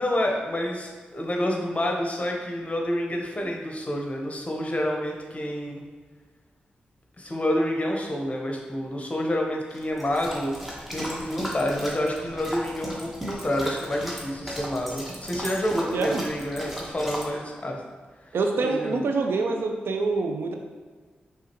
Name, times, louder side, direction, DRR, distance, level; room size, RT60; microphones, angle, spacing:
voice 1, 0.0-5.8 7.2-10.5 10.9-17.8 18.6-19.0, left 1 dB, 35° left, 0 dB, 0.9 m, -28 dB
sound 1, 9.7-17.3, equal, 5° right, 1.2 m, -36 dB
voice 2, 15.9-16.2 18.3-20.5, right 3 dB, 75° right, 3 dB, 0.4 m, -25 dB
4.8 x 3.2 x 3.0 m, 1.5 s
supercardioid pair, 40°, 4 cm